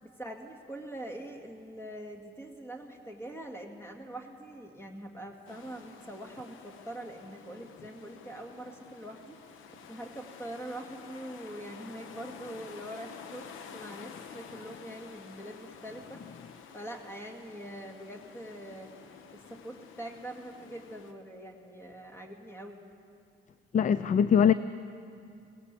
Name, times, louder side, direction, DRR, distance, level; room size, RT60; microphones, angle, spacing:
voice 1, 0.0-9.4 9.9-16.2 16.7-18.9 19.3-22.8, right 1 dB, 10° left, 3 dB, 2.1 m, -43 dB
sound 1, 5.5-21.1, left 7 dB, 90° left, 1.1 m, -50 dB
voice 2, 23.7-24.5, left 8 dB, 40° left, 15 dB, 0.4 m, -22 dB
18.5 x 17.0 x 8.3 m, 2.5 s
cardioid pair, 90°, 20 cm